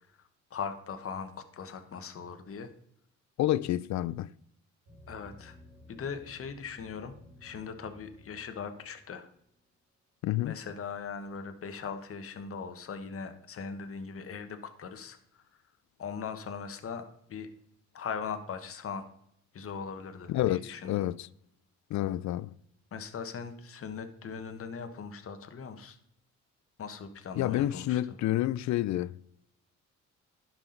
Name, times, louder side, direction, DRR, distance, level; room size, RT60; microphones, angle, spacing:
voice 1, 0.5-2.7 5.1-5.5 5.9-7.1 7.4-9.3 10.4-15.2 16.0-17.5 17.9-19.1 19.5-20.9 22.9-26.0 26.8-28.2, left 6 dB, 50° left, 1.2 m, -40 dB
voice 2, 3.4-4.3 10.2-10.5 20.3-21.3 21.9-22.5 27.4-29.1, left 14 dB, 65° left, 0.5 m, -29 dB
sound 1, 4.9-9.6, left 2 dB, 85° right, 3.8 m, -55 dB
11.0 x 6.0 x 3.9 m
cardioid pair, 90°, 30 cm